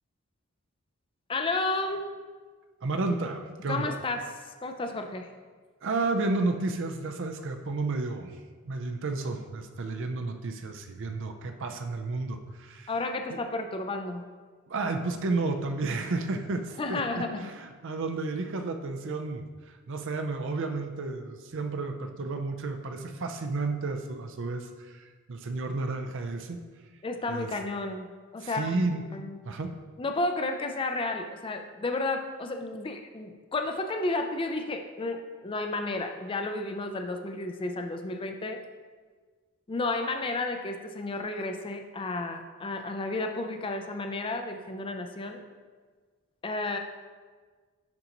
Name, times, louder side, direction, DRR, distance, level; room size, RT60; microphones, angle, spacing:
voice 1, 1.3-2.1 3.7-4.3 4.6-5.3 12.9-14.3 16.8-17.5 27.0-29.4 30.0-38.6 39.7-45.4 46.4-46.8, left 2 dB, 25° left, 5 dB, 0.4 m, -32 dB
voice 2, 2.8-4.0 5.8-8.3 8.7-12.9 13.3-13.4 14.7-26.6 27.3-27.5 28.4-29.0 29.4-29.7, right 3 dB, 55° right, 6 dB, 0.5 m, -32 dB
10.5 x 3.9 x 2.9 m, 1.5 s
head